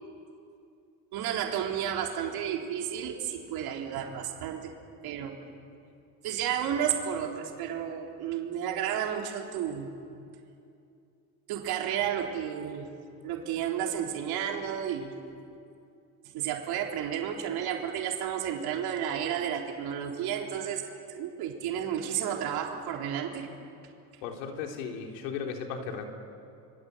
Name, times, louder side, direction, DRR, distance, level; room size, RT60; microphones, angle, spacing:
voice 1, 1.1-4.7 5.0-5.4 6.2-9.9 11.5-12.9 13.2-15.1 16.3-20.8 21.1-23.5, right 9 dB, 70° right, 1 dB, 4.1 m, -32 dB
voice 2, 24.2-26.1, left 6 dB, 90° left, 2 dB, 3.6 m, -36 dB
26.5 x 24.5 x 8.2 m, 2.6 s
supercardioid pair, 95°, 39 cm